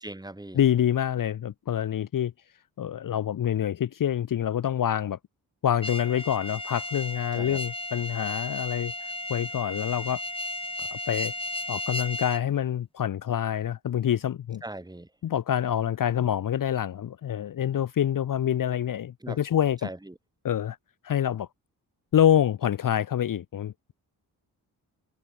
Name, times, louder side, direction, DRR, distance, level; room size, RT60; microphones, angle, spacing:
voice 1, 0.0-0.6 7.3-7.6 14.6-15.1 19.2-19.4 19.8-20.1, right 1 dB, 10° right, 2.0 m, -39 dB
voice 2, 0.5-2.3 2.8-5.2 5.6-8.9 9.3-10.2 10.8-11.3 11.7-14.6 15.2-19.9 20.4-20.8 21.0-21.5 22.1-23.9, left 10 dB, 55° left, 0.8 m, -26 dB
sound 1, 5.8-12.4, left 2 dB, 15° left, 2.5 m, -34 dB
cardioid pair, 80°, 38 cm